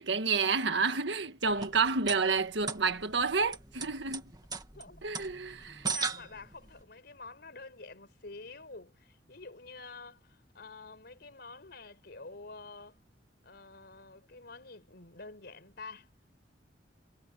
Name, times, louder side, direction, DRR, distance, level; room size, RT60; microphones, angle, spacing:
voice 1, 0.0-4.2 5.0-5.9, right 4 dB, 80° right, 1.7 m, -29 dB
sound 1, 1.4-6.8, right 5 dB, 25° right, 2.0 m, -39 dB
voice 2, 5.5-13.0 13.4-16.1, left 3 dB, 65° left, 4.6 m, -48 dB
head